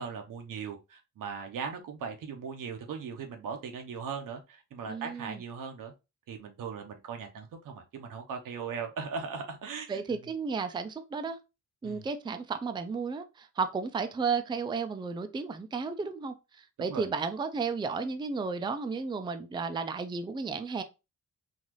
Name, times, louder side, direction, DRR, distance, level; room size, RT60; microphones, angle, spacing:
voice 1, 0.0-5.9 6.3-10.2 11.8-12.0 16.8-17.1, right 6 dB, 85° right, 0.8 m, -39 dB
voice 2, 4.9-5.4 9.9-11.4 11.8-20.8, right 5 dB, 15° right, 0.4 m, -33 dB
4.0 x 2.5 x 3.0 m
cardioid pair, 105°, 32 cm